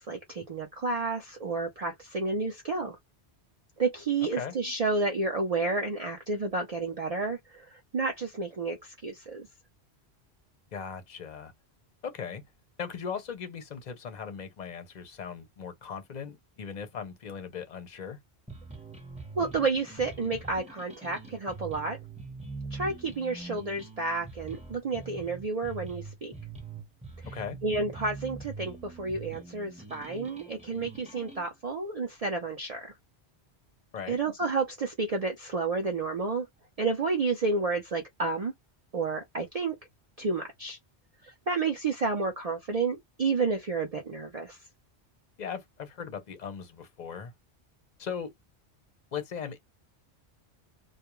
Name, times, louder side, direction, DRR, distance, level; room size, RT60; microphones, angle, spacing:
voice 1, 0.0-3.0 3.8-9.5 19.4-22.0 22.7-26.3 27.6-32.9 34.1-36.5 36.8-38.5 38.9-39.8 40.2-40.8 41.2-44.6, right 3 dB, 45° right, 0.5 m, -30 dB
voice 2, 10.7-11.5 12.0-12.4 12.8-18.2 27.3-27.6 33.9-34.2 45.4-47.3 48.0-48.3 49.1-49.6, left 7 dB, 45° left, 0.7 m, -38 dB
sound 1, 18.5-31.4, right 3 dB, 5° right, 0.8 m, -43 dB
2.3 x 2.1 x 2.9 m
omnidirectional pair, 1.1 m